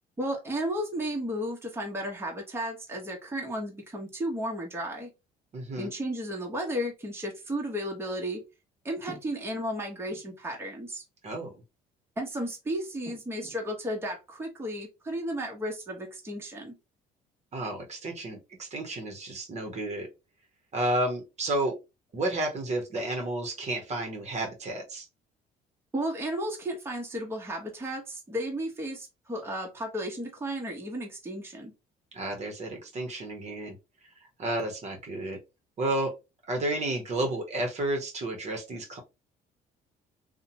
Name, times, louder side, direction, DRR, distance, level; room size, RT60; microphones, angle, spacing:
voice 1, 0.2-5.1 5.8-8.4 8.8-11.0 12.2-16.8 25.9-31.7, equal, 15° right, 0 dB, 0.9 m, -33 dB
voice 2, 5.5-5.9 11.2-11.5 17.5-20.1 20.7-21.7 22.1-25.1 32.1-33.8 34.4-35.4 35.8-36.1 36.5-39.0, right 1 dB, 40° right, 3 dB, 0.8 m, -31 dB
2.7 x 2.1 x 2.7 m, 0.25 s
cardioid pair, 110°, 17 cm